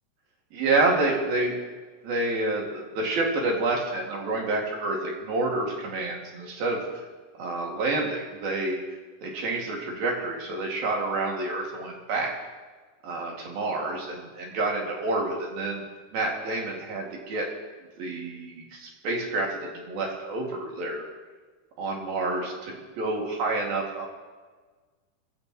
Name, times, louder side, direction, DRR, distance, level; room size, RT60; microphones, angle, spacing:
voice 1, 0.5-1.6 2.0-6.8 7.4-8.8 9.2-12.4 13.0-15.8 16.1-17.5 18.0-21.1 21.8-24.1, right 2 dB, 80° right, -1 dB, 4.1 m, -28 dB
20.0 x 15.5 x 3.1 m, 1.4 s
omnidirectional pair, 4.2 m